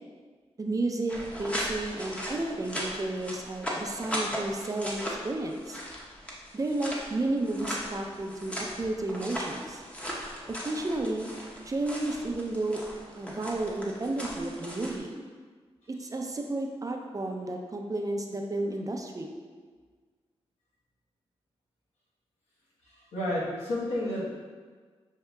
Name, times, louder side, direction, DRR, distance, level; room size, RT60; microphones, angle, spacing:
voice 1, 0.6-5.8 6.5-9.8 10.5-11.3 11.7-12.8 13.2-15.1 15.9-19.3, right 2 dB, 30° right, 2 dB, 0.5 m, -32 dB
sound 1, 1.1-15.0, equal, 10° left, 0.9 m, -38 dB
voice 2, 22.9-24.3, left 1 dB, 85° left, -7 dB, 1.2 m, -31 dB
6.5 x 2.7 x 2.3 m, 1.5 s
cardioid pair, 55°, 11 cm